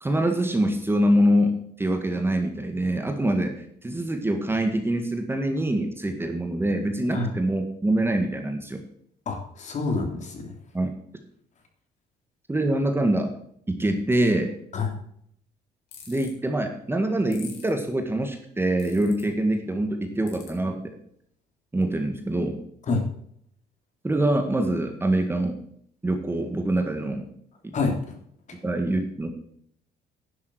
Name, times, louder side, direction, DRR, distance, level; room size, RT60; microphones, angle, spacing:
voice 1, 0.0-8.8 10.7-10.9 12.5-13.3 13.7-14.5 16.1-21.0 21.7-22.6 24.0-25.6 26.0-27.2 27.6-27.8 28.6-29.3, right 1 dB, 15° right, 5 dB, 1.8 m, -24 dB
voice 2, 9.2-10.5 14.7-14.9 22.9-23.0 27.7-28.2, left 3 dB, 45° left, 3 dB, 3.4 m, -27 dB
sound 1, 15.9-16.3 17.3-17.7 18.8-19.2 20.3-20.5, left 7 dB, 75° left, 4.2 m, -44 dB
11.0 x 7.4 x 6.3 m, 0.66 s
cardioid pair, 110°, 17 cm